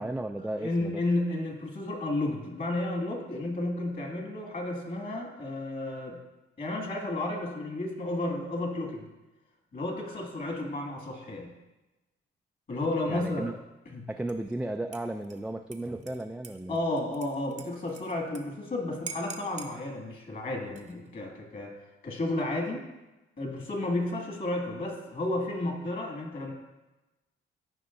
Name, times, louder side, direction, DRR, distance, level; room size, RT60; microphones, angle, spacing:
voice 1, 0.0-1.0 13.1-13.6 14.1-16.8, right 1 dB, 5° right, 4 dB, 0.3 m, -34 dB
voice 2, 0.6-6.2 6.6-9.1 9.7-11.5 12.7-13.5 13.9-14.0 16.7-21.7 22.0-22.8 23.4-26.5, left 2 dB, 45° left, 1 dB, 2.0 m, -32 dB
Dishes pots and pans / Liquid, 14.3-14.6 14.9-18.4 18.7-18.8 19.1-19.7 20.6-21.1, right 5 dB, 35° right, 0.8 m, -45 dB
13.5 x 5.2 x 2.6 m, 1.0 s
cardioid pair, 90°, 20 cm